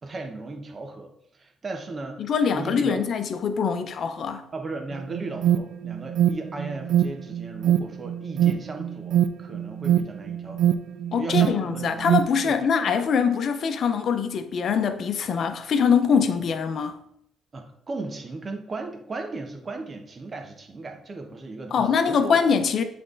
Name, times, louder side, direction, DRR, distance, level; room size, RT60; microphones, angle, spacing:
voice 1, 0.0-2.3 2.5-3.0 4.5-10.8 11.1-12.1 12.4-12.5 17.5-22.4, right 3 dB, 35° right, 1.2 m, -36 dB
voice 2, 2.2-4.5 11.1-17.0 21.7-22.8, left 6 dB, 60° left, 0.7 m, -23 dB
Alarm, 4.9-12.4, right 10 dB, 80° right, 0.3 m, -24 dB
7.8 x 3.4 x 3.9 m
cardioid pair, 90°, 0 cm